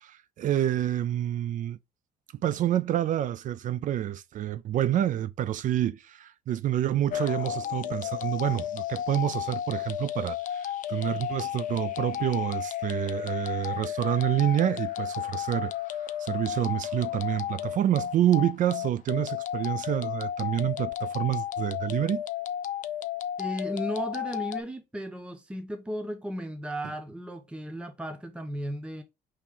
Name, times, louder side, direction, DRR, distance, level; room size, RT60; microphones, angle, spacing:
voice 1, 0.0-1.8 2.4-15.7 16.2-22.2, right 12 dB, 50° right, 0.4 m, -28 dB
sound 1, 7.1-24.6, left 10 dB, 50° left, 0.5 m, -33 dB
voice 2, 23.4-29.0, equal, 5° right, 0.7 m, -35 dB
4.4 x 3.1 x 3.6 m
cardioid pair, 110°, 17 cm